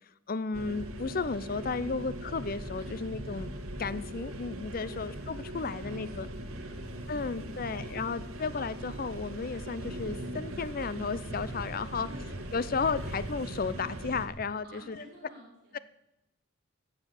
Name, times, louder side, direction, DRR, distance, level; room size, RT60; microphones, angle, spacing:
voice 1, 0.3-3.5 3.8-6.3 7.1-12.1 12.5-15.0, left 4 dB, 40° left, 16 dB, 0.5 m, -33 dB
sound 1, 0.5-14.3, right 1 dB, 80° right, 1.8 m, -40 dB
voice 2, 1.8-2.1 2.8-3.4 4.1-4.6 4.9-8.1 11.9-12.3 12.9-13.1 14.6-15.8, right 1 dB, 50° right, -5 dB, 6.7 m, -52 dB
14.0 x 7.9 x 7.1 m, 0.86 s
head